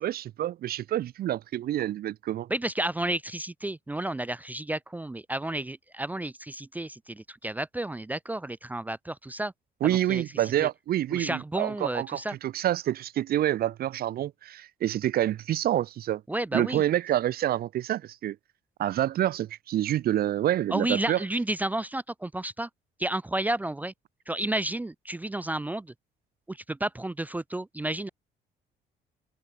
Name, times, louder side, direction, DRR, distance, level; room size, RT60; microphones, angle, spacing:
voice 1, 0.0-2.5 9.8-16.2 16.5-18.4 18.8-21.2, right 12 dB, 65° right, 2.3 m, -27 dB
voice 2, 2.5-9.5 9.8-10.2 10.6-10.7 11.1-12.4 16.3-16.8 20.7-22.7 23.0-23.9 24.3-25.9 26.5-28.1, right 1 dB, 10° right, 0.6 m, -31 dB
cardioid pair, 110°, 17 cm